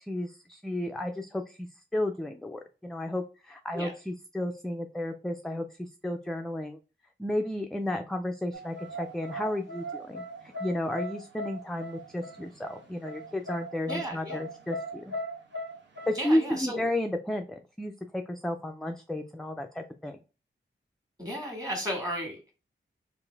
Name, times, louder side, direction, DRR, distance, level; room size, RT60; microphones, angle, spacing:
voice 1, 0.0-1.6 1.9-6.8 7.2-15.1 16.1-20.2, left 1 dB, 5° left, 4 dB, 0.3 m, -32 dB
sound 1, 8.5-16.3, equal, 70° right, 1.0 m, -39 dB
voice 2, 13.9-14.4 16.2-16.8 21.2-22.5, equal, 20° right, 1 dB, 1.6 m, -34 dB
3.9 x 2.5 x 3.3 m, 0.33 s
wide cardioid pair, 95°, 19 cm